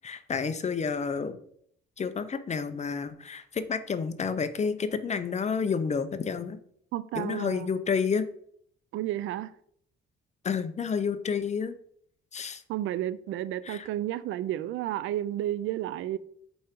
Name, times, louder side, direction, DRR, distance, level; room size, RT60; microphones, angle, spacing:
voice 1, 0.0-1.4 2.0-6.6 7.1-8.3 10.4-11.7 12.3-12.6 13.6-13.9, left 6 dB, 35° left, 0.7 m, -30 dB
voice 2, 6.9-7.7 8.9-9.5 12.7-16.2, right 13 dB, 80° right, 0.5 m, -32 dB
5.4 x 4.9 x 4.4 m
cardioid pair, 90°, 20 cm